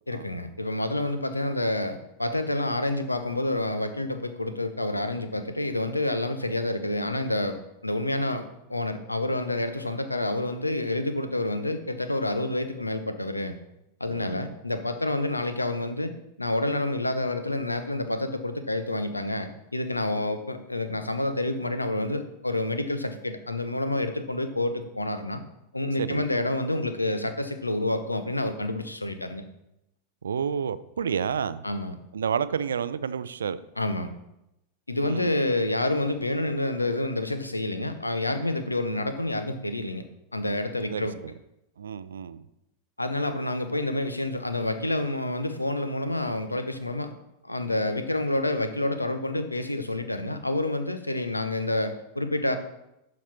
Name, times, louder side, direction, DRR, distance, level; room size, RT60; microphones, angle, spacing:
voice 1, 0.1-8.4 8.7-13.6 14.0-16.1 16.4-25.4 25.7-29.4 31.6-31.9 33.8-34.1 34.9-40.0 40.3-41.2 43.0-47.1 47.4-52.6, left 2 dB, 85° left, 10 dB, 0.8 m, -28 dB
voice 2, 14.1-14.4 26.0-26.3 30.2-31.6 32.1-33.6 35.0-35.4 40.9-41.1 41.8-42.4, right 7 dB, 70° right, 15 dB, 0.4 m, -30 dB
11.5 x 4.2 x 4.4 m, 0.86 s
figure-of-eight pair, 90°, 0 cm